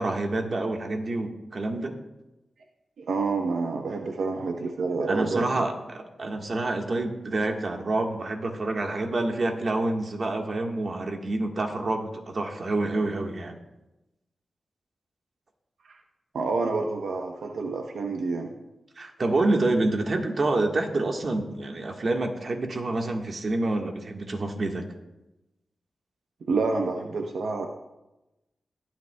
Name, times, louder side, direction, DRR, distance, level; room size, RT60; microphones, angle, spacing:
voice 1, 0.0-1.9 5.1-13.6 19.0-24.8, right 2 dB, 50° right, 3 dB, 1.4 m, -27 dB
voice 2, 3.0-5.6 15.9-16.0 16.3-18.5 26.5-27.7, right 3 dB, 80° right, 3 dB, 0.8 m, -28 dB
20.5 x 9.2 x 2.3 m, 0.97 s
wide cardioid pair, 95°, 0 cm